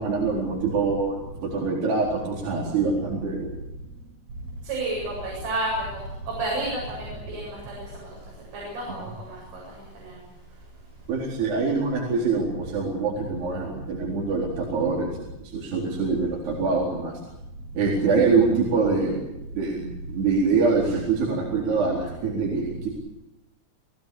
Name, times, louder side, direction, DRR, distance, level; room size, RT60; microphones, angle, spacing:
voice 1, 0.0-3.5 11.1-17.2 17.7-22.9, right 4 dB, 55° right, -3 dB, 6.0 m, -25 dB
voice 2, 4.7-5.7 6.4-6.7 7.0-7.8 8.5-9.4 10.1-10.2, right 2 dB, 70° right, -3 dB, 10.5 m, -30 dB
30.0 x 18.0 x 8.5 m, 0.91 s
omnidirectional pair, 5.9 m